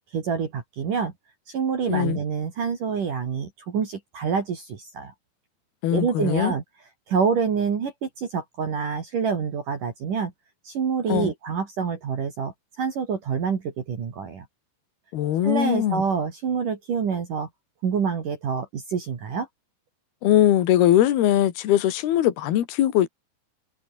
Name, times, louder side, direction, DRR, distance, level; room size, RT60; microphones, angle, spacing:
voice 1, 0.1-1.1 1.5-5.1 5.9-6.6 7.1-10.3 10.6-14.5 15.4-17.5 17.8-19.5, right 6 dB, 45° right, 3.9 m, -27 dB
voice 2, 1.9-2.2 5.8-6.5 11.1-11.3 15.1-16.0 20.2-23.1, left 12 dB, 60° left, 3.6 m, -21 dB
omnidirectional pair, 5.5 m